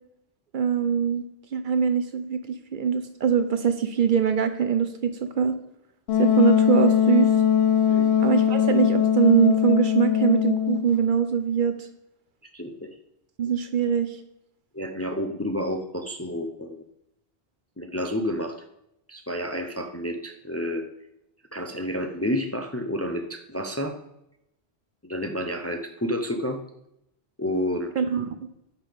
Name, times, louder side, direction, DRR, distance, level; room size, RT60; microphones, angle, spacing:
voice 1, 0.5-1.2 1.5-5.5 6.2-7.3 8.2-11.7 13.4-14.1 28.0-28.3, right 7 dB, 60° right, 10 dB, 0.7 m, -22 dB
Wind instrument woodwind instrument, 6.1-10.9, left 9 dB, 75° left, 1.0 m, -21 dB
voice 2, 12.5-12.9 14.7-16.8 17.8-18.6 19.1-20.8 21.5-23.9 25.0-26.6 27.4-27.9, equal, 20° left, 5 dB, 0.5 m, -30 dB
9.6 x 6.0 x 3.5 m, 0.82 s
omnidirectional pair, 1.1 m